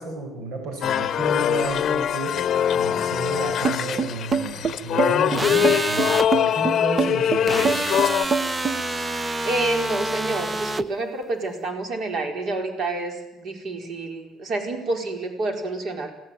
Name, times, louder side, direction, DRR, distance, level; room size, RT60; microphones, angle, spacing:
voice 1, 0.0-2.3 2.7-7.8, right 2 dB, 75° right, 3 dB, 6.9 m, -32 dB
sound 1, 0.8-8.2, left 9 dB, 50° left, 0.8 m, -23 dB
sound 2, 3.6-8.8, right 5 dB, 35° right, 1.1 m, -24 dB
sound 3, 5.3-6.3 7.5-10.8, right 2 dB, 15° right, 0.8 m, -27 dB
voice 2, 9.4-16.1, right 2 dB, 55° right, 3 dB, 4.6 m, -28 dB
25.5 x 18.0 x 9.1 m, 0.88 s
cardioid pair, 135°, 0 cm